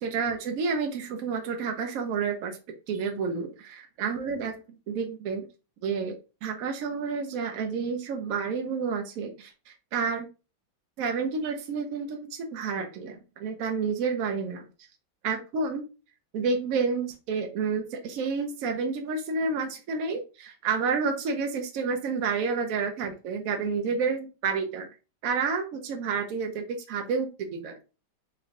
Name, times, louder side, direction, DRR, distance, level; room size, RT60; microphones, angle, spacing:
voice 1, 0.0-2.6 2.9-4.5 4.9-5.5 5.8-10.3 11.0-14.7 15.2-15.8 16.3-24.9 25.2-27.8, right 5 dB, 85° right, 4 dB, 0.7 m, -30 dB
3.4 x 3.1 x 2.4 m, 0.32 s
omnidirectional pair, 2.1 m